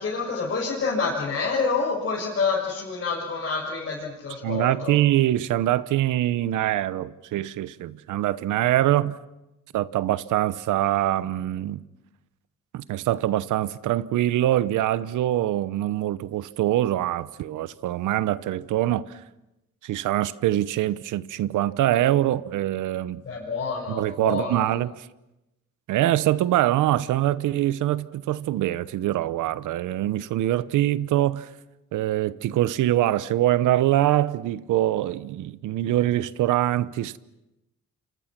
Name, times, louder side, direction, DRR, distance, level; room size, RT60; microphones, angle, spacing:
voice 1, 0.0-5.0 23.2-24.6, left 4 dB, 45° left, 6.7 m, -28 dB
voice 2, 4.4-9.2 9.7-11.8 12.7-19.0 19.8-23.2 23.9-25.1 25.9-31.5 31.9-37.2, right 13 dB, 85° right, 1.0 m, -24 dB
29.0 x 25.5 x 6.1 m
cardioid pair, 90°, 30 cm